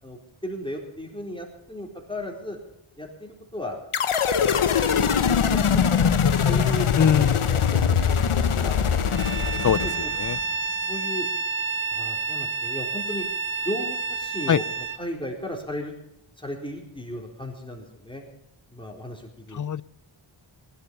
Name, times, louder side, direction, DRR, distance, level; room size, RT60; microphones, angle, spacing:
voice 1, 0.0-2.6 3.0-3.8 4.4-5.4 5.7-6.9 7.2-8.3 8.6-8.8 9.5-10.6 10.9-11.3 11.9-13.3 13.6-15.9 16.4-18.2 18.7-19.6, left 1 dB, 10° left, 0 dB, 4.0 m, -36 dB
sound 1, 3.9-10.4, left 7 dB, 80° left, 1.0 m, -22 dB
voice 2, 7.0-7.4 9.6-9.9 10.2-10.4 14.5-14.6 19.5-19.8, left 8 dB, 40° left, 19 dB, 0.5 m, -21 dB
Bowed string instrument, 9.1-15.0, right 4 dB, 25° right, 1.4 m, -29 dB
20.5 x 11.5 x 5.4 m, 0.81 s
wide cardioid pair, 55°, 49 cm